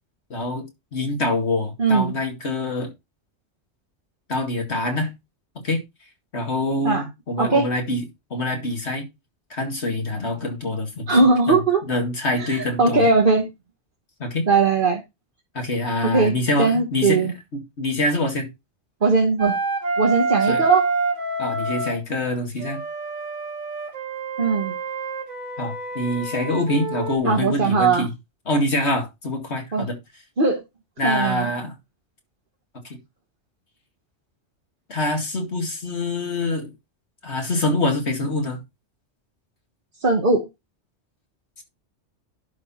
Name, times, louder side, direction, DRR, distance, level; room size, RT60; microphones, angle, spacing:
voice 1, 0.3-0.6 0.9-2.9 4.3-5.1 5.6-5.8 6.3-8.0 8.3-9.0 9.5-13.1 14.2-14.4 15.5-18.5 20.5-20.6 21.4-22.8 25.6-28.1 28.5-29.9 31.0-31.7 32.8-33.0 34.9-36.7 37.2-38.6 41.6-41.7, left 2 dB, 65° left, 2.4 m, -25 dB
voice 2, 1.8-2.2 6.8-7.0 7.4-7.7 11.1-11.8 12.4-13.5 14.5-15.0 16.0-17.3 19.0-19.5 20.0-20.9 24.4-24.8 27.2-28.1 29.7-29.9 30.4-30.6 31.0-31.5 40.0-40.5, right 4 dB, 45° right, 1.5 m, -19 dB
Wind instrument woodwind instrument, 19.4-22.0 22.6-27.2, right 3 dB, 85° right, 2.1 m, -27 dB
11.0 x 4.4 x 4.2 m
omnidirectional pair, 1.2 m